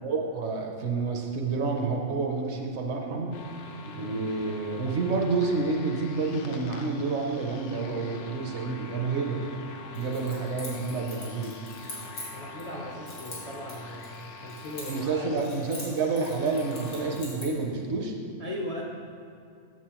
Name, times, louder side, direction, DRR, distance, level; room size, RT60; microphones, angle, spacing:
voice 1, 0.0-3.3 3.9-9.4 9.9-11.6 14.9-18.1, right 4 dB, 60° right, 2 dB, 0.9 m, -29 dB
sound 1, 3.3-17.2, left 3 dB, 65° left, 0.8 m, -45 dB
Keys jangling, 9.9-12.7 13.1-15.1 15.4-17.6, left 2 dB, 90° left, 2.1 m, -43 dB
voice 2, 12.3-15.3 18.4-18.8, left 1 dB, 45° left, -4 dB, 0.5 m, -38 dB
7.5 x 6.8 x 2.9 m, 2.5 s
omnidirectional pair, 1.4 m